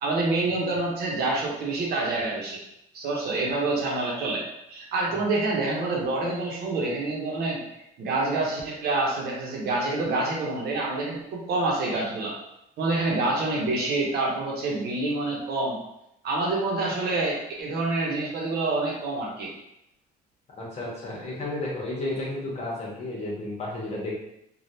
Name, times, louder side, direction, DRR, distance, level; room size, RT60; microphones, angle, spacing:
voice 1, 0.0-2.6 2.9-4.4 4.7-7.6 8.0-12.3 12.8-15.8 16.2-19.5, right 2 dB, 70° right, -2 dB, 0.9 m, -27 dB
voice 2, 20.6-24.1, left 2 dB, 40° left, -4 dB, 1.2 m, -32 dB
3.2 x 2.4 x 2.7 m, 0.83 s
cardioid pair, 110°, 17 cm